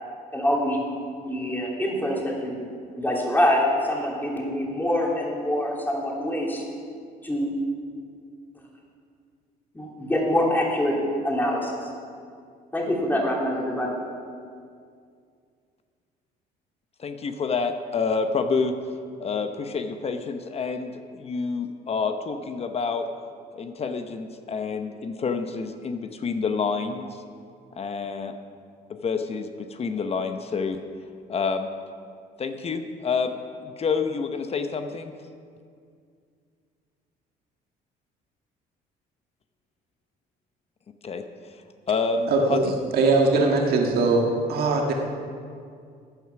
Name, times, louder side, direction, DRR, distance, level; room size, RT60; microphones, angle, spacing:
voice 1, 0.3-0.8 1.2-2.5 2.9-6.6 7.2-7.5 9.7-11.0 11.2-11.7 12.7-13.9, left 1 dB, 10° left, -2 dB, 3.0 m, -25 dB
voice 2, 17.0-18.7 19.2-23.1 23.5-27.1 27.8-28.3 28.9-30.8 31.3-31.7 32.4-35.1 41.0-41.2 41.9-42.7, left 5 dB, 35° left, 7 dB, 0.9 m, -28 dB
voice 3, 42.3-44.2 44.5-44.9, right 3 dB, 65° right, 1 dB, 1.7 m, -21 dB
14.0 x 9.4 x 5.9 m, 2.2 s
cardioid pair, 110°, 17 cm